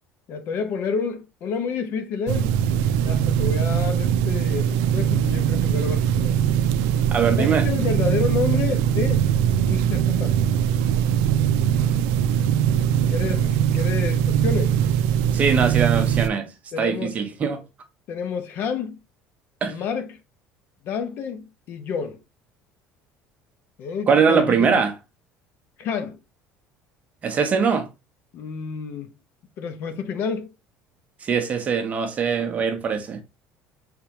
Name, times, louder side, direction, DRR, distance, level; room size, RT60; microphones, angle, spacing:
voice 1, 0.3-6.4 7.4-9.2 9.6-10.4 13.1-14.8 16.7-17.1 18.1-19.0 19.7-20.1 20.8-22.2 23.8-24.8 25.8-26.2 28.3-29.1 29.6-30.5, left 6 dB, 55° left, 0.9 m, -29 dB
sound 1, 2.3-16.3, right 9 dB, 85° right, 0.4 m, -21 dB
voice 2, 7.1-7.7 15.3-17.6 19.6-19.9 24.1-25.0 27.2-27.9 31.2-33.2, right 6 dB, 35° right, 1.0 m, -22 dB
4.8 x 3.6 x 3.0 m
cardioid pair, 125°, 4 cm